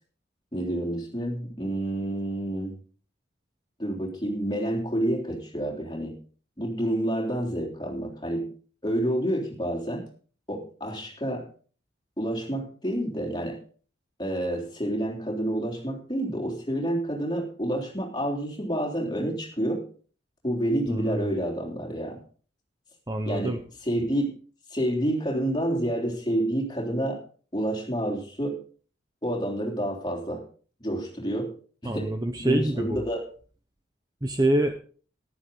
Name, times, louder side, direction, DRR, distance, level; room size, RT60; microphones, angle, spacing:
voice 1, 0.5-2.7 3.8-6.2 6.6-8.5 8.8-10.1 10.5-11.5 12.2-13.6 14.2-19.9 20.4-22.2 23.2-24.3 24.7-27.2 27.5-28.6 29.2-30.5 30.8-31.5 31.8-33.3, right 1 dB, 25° left, -1 dB, 3.4 m, -29 dB
voice 2, 20.9-21.3 23.1-23.6 31.9-33.0 34.2-34.8, right 1 dB, 20° right, 6 dB, 0.8 m, -26 dB
14.0 x 11.5 x 3.9 m, 0.41 s
head